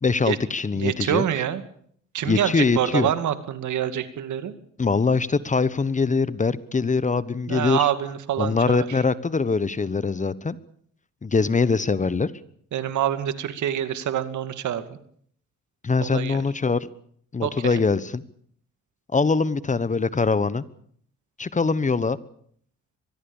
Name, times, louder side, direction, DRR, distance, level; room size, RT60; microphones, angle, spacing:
voice 1, 0.0-1.2 2.2-3.1 4.8-7.8 8.4-10.6 11.2-12.3 15.8-16.9 17.3-18.2 19.1-20.6 21.4-22.2, left 4 dB, 25° left, 17 dB, 1.1 m, -23 dB
voice 2, 0.8-1.6 2.1-4.5 7.5-8.9 12.7-14.8 16.0-16.4 17.4-17.8, right 10 dB, 75° right, 11 dB, 2.4 m, -26 dB
24.0 x 20.5 x 7.2 m, 0.62 s
cardioid pair, 90°, 30 cm